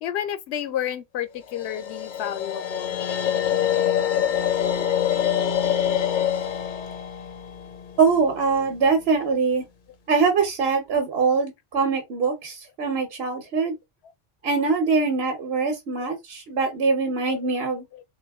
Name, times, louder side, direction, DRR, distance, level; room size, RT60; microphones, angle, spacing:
voice 1, 0.0-3.0 16.0-16.1 17.3-17.5 17.9-18.0, left 10 dB, 85° left, 0.8 m, -31 dB
sound 1, 1.5-8.6, left 10 dB, 60° left, 0.6 m, -25 dB
voice 2, 8.0-9.6 10.1-13.7 14.4-17.8, right 4 dB, 65° right, 1.1 m, -23 dB
3.4 x 2.5 x 3.4 m
omnidirectional pair, 1.1 m